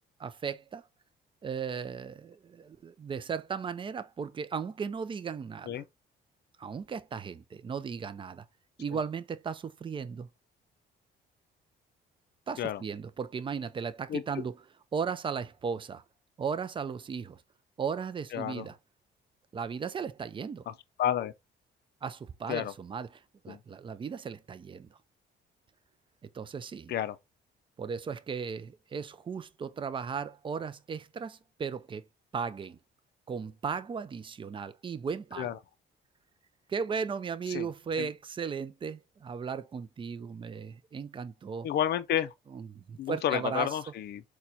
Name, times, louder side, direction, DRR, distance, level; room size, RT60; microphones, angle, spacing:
voice 1, 0.2-0.9 1.4-5.9 6.6-8.4 8.8-10.3 12.5-14.6 14.9-16.0 16.4-17.4 17.8-18.8 19.5-20.7 22.0-25.0 26.2-26.9 27.8-32.0 32.3-32.8 33.3-35.5 36.7-41.7 42.5-43.7, right 6 dB, 25° right, 0.3 m, -36 dB
voice 2, 18.3-18.7 20.7-20.8 21.0-21.3 22.5-22.7 23.5-23.6 26.9-27.2 35.4-35.6 37.5-37.7 38.0-38.1 41.6-42.3 43.0-44.2, left 10 dB, 55° left, 0.4 m, -30 dB
4.1 x 2.2 x 2.7 m
cardioid pair, 90°, 20 cm